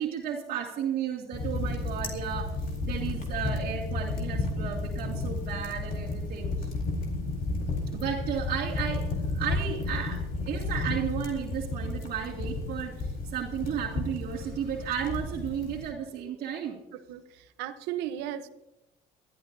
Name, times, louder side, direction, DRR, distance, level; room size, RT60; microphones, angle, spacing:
voice 1, 0.0-2.5 2.8-6.7 7.9-9.1 9.3-16.8, right 8 dB, 60° right, -3 dB, 2.1 m, -33 dB
sound 1, 1.3-15.9, left 2 dB, 55° left, 4.0 m, -32 dB
voice 2, 16.9-18.5, right 11 dB, 85° right, 12 dB, 0.9 m, -36 dB
22.5 x 13.5 x 2.7 m, 0.99 s
supercardioid pair, 90°, 17 cm